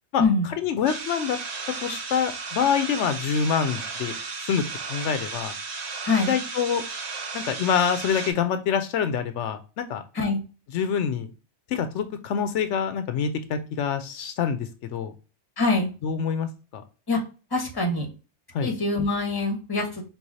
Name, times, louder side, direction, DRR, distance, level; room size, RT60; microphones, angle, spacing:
voice 1, 0.1-1.4 1.8-4.1 4.5-5.5 6.2-6.8 7.3-10.0 10.7-11.3 11.7-15.1 16.0-16.8 18.5-18.7, left 7 dB, 80° left, 9 dB, 0.9 m, -26 dB
sound 1, 0.9-8.3, right 4 dB, 45° right, 0.7 m, -34 dB
voice 2, 15.6-15.9 17.1-17.2 17.5-18.1 18.6-20.0, left 3 dB, 20° left, 2 dB, 1.0 m, -24 dB
4.7 x 3.6 x 2.6 m, 0.33 s
omnidirectional pair, 1.2 m